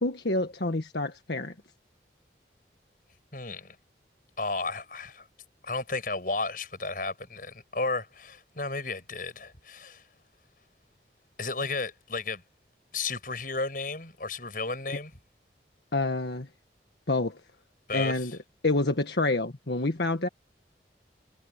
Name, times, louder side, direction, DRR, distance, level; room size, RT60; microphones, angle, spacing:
voice 1, 0.0-1.5 15.9-16.5 17.1-17.4 17.9-18.4 18.6-20.3, left 2 dB, 70° left, 1.6 m, -27 dB
voice 2, 3.3-3.8 4.4-5.2 5.6-10.0 11.4-12.4 12.9-15.1 17.9-18.4, left 3 dB, 50° left, 7.2 m, -33 dB
head